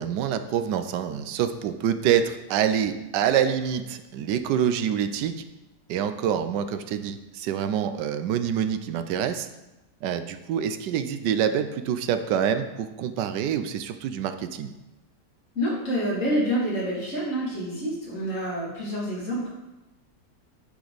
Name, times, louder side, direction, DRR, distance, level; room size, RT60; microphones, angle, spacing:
voice 1, 0.0-5.3 5.9-9.5 10.0-14.7, right 9 dB, 85° right, 10 dB, 1.2 m, -26 dB
voice 2, 15.5-19.5, equal, 45° left, -6 dB, 2.9 m, -27 dB
10.0 x 5.0 x 4.0 m, 1.0 s
omnidirectional pair, 1.8 m